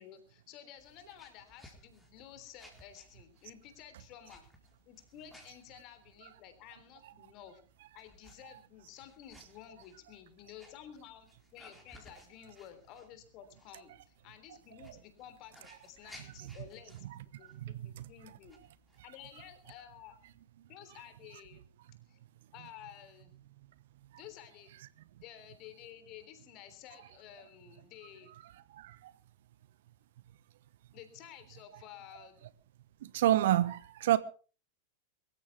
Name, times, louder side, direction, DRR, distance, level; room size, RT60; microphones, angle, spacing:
voice 1, 0.0-4.4 4.9-7.6 7.9-17.0 17.2-18.6 19.0-20.2 20.7-21.7 22.1-22.2 22.5-23.3 24.2-24.8 25.2-28.3 30.9-32.5, left 10 dB, 40° left, 3.5 m, -52 dB
sound 1, 0.8-20.4, left 1 dB, ahead, 4.4 m, -61 dB
voice 2, 14.5-14.9 15.6-15.7 16.2-16.5 16.9-18.4 19.3-19.5 20.9-21.0 22.6-22.7 28.3-28.4 28.7-29.1 32.2-32.3 33.0-34.2, right 13 dB, 55° right, 1.0 m, -32 dB
24.0 x 14.0 x 3.5 m
figure-of-eight pair, 90°, 0 cm